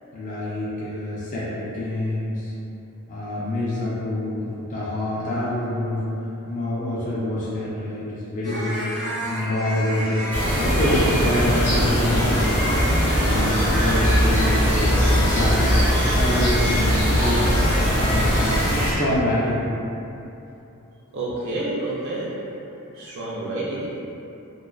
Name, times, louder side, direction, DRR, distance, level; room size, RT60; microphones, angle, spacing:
voice 1, 0.1-2.4 3.1-6.0 6.5-8.7 9.2-12.5 13.2-15.7 16.1-17.5 17.9-18.6 18.8-19.6, left 1 dB, 35° left, -8 dB, 0.4 m, -26 dB
sound 1, 8.4-19.0, equal, 55° left, 0.8 m, -30 dB
sound 2, 10.3-18.9, equal, 90° left, 0.8 m, -20 dB
voice 2, 21.1-22.3 22.9-24.0, right 2 dB, 55° right, -7 dB, 0.3 m, -29 dB
2.4 x 2.3 x 2.2 m, 2.8 s
head